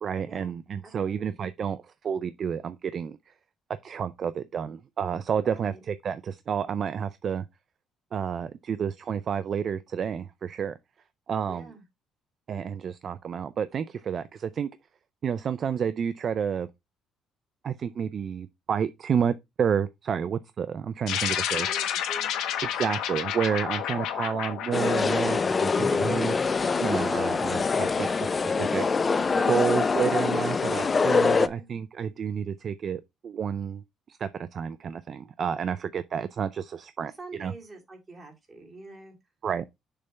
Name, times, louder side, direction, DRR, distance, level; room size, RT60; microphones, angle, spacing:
voice 1, 0.0-3.2 3.8-7.5 8.1-10.7 11.3-11.7 12.5-14.7 15.2-16.7 17.6-21.7 22.7-26.4 26.8-28.8 29.4-33.8 34.1-37.1 37.4-37.5 39.4-39.6, right 7 dB, 40° right, 0.4 m, -30 dB
voice 2, 0.8-1.3 5.4-5.8 11.5-11.8 21.2-22.6 31.3-31.7 37.0-39.2, right 2 dB, 20° right, 2.3 m, -46 dB
sound 1, 21.1-25.8, left 10 dB, 85° left, 1.2 m, -30 dB
sound 2, 24.7-31.5, left 4 dB, 25° left, 0.4 m, -24 dB
6.7 x 3.4 x 5.2 m
cardioid pair, 160°, 0 cm